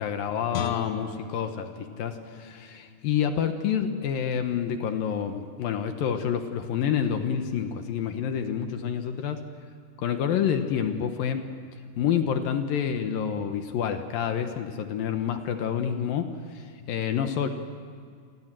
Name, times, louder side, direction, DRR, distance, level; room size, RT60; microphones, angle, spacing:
voice 1, 0.0-9.4 10.0-11.4 12.0-17.5, left 8 dB, 70° left, 7 dB, 2.7 m, -28 dB
Guitar, 0.5-3.7 4.1-4.2, left 9 dB, 90° left, 3.4 m, -40 dB
29.5 x 23.5 x 7.6 m, 2.1 s
omnidirectional pair, 4.7 m